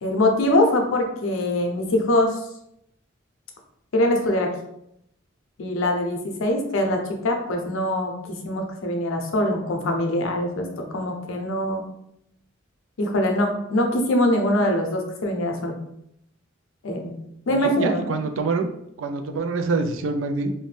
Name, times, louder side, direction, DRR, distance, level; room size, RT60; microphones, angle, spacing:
voice 1, 0.0-2.4 3.9-4.5 5.6-11.8 13.0-15.8 16.8-17.1 17.5-18.0, left 1 dB, 85° left, 3 dB, 0.6 m, -23 dB
voice 2, 17.5-18.7 19.0-20.5, right 3 dB, 70° right, 7 dB, 0.3 m, -25 dB
2.6 x 2.1 x 3.2 m, 0.77 s
head